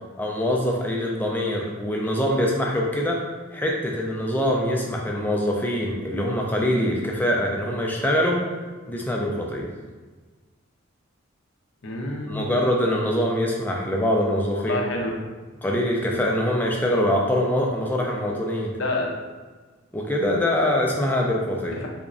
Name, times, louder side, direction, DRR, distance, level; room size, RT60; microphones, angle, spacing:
voice 1, 0.2-3.2 3.5-8.4 8.9-9.7 12.3-14.8 15.6-18.7 19.9-21.8, left 1 dB, 10° left, -1 dB, 0.4 m, -24 dB
voice 2, 11.8-12.7 14.6-15.2 18.8-19.1 21.8-21.9, left 2 dB, 55° left, 0 dB, 0.5 m, -28 dB
3.5 x 3.0 x 2.5 m, 1.4 s
head